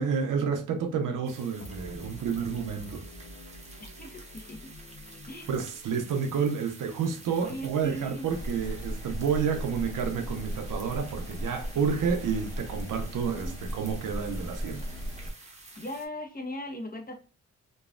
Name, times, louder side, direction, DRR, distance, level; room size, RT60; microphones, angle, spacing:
voice 1, 0.0-3.0 5.5-14.8, right 6 dB, 80° right, 0.7 m, -30 dB
sound 1, 1.3-16.1, right 2 dB, 20° right, 0.8 m, -50 dB
sound 2, 1.6-8.5, equal, 60° left, 0.8 m, -48 dB
voice 2, 3.8-4.7 5.3-5.5 7.4-8.3 13.4-13.5 15.8-17.1, left 1 dB, 30° left, 0.9 m, -39 dB
sound 3, 8.3-15.3, equal, 10° left, 1.1 m, -36 dB
3.0 x 2.2 x 2.4 m
cardioid pair, 70°, 31 cm